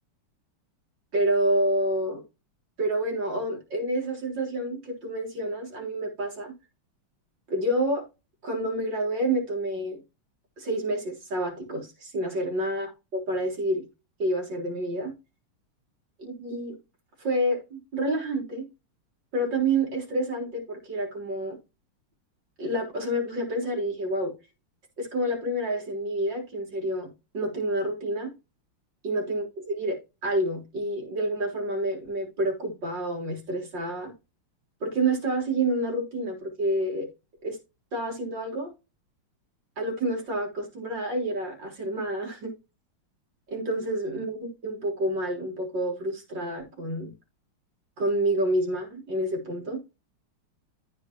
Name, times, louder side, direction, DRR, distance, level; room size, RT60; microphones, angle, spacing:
voice 1, 1.1-2.2 2.8-6.5 7.5-8.0 8.4-10.0 10.6-13.8 14.2-15.1 16.2-16.8 17.2-18.7 19.3-21.6 22.6-24.3 25.0-28.3 29.0-34.1 34.8-37.1 37.4-37.6 37.9-38.7 39.8-42.5 43.5-44.4 44.6-47.1 48.0-49.8, right 1 dB, 55° right, 4.5 m, -28 dB
14.5 x 5.2 x 3.0 m
omnidirectional pair, 2.4 m